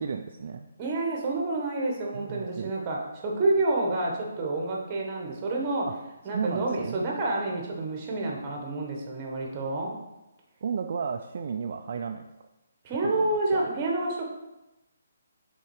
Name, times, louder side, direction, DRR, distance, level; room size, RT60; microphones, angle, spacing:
voice 1, 0.0-0.6 2.1-2.7 5.9-6.0 6.3-7.0 10.6-12.2 13.0-13.6, right 6 dB, 50° right, 5 dB, 0.3 m, -33 dB
voice 2, 0.8-5.9 6.2-10.0 12.8-14.2, right 2 dB, 25° right, -1 dB, 1.2 m, -28 dB
5.5 x 3.8 x 4.7 m, 0.98 s
hypercardioid pair, 160°, 0 cm